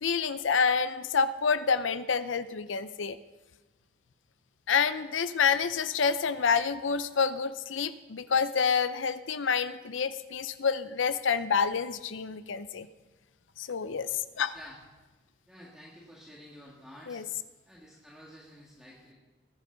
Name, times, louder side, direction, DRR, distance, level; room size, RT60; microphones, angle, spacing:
voice 1, 0.0-3.2 4.7-12.9 13.6-14.5 17.1-17.3, left 6 dB, 80° left, 13 dB, 0.6 m, -28 dB
voice 2, 15.5-17.2 17.6-19.1, equal, 5° right, -5 dB, 1.8 m, -50 dB
19.5 x 10.5 x 3.9 m, 1.2 s
head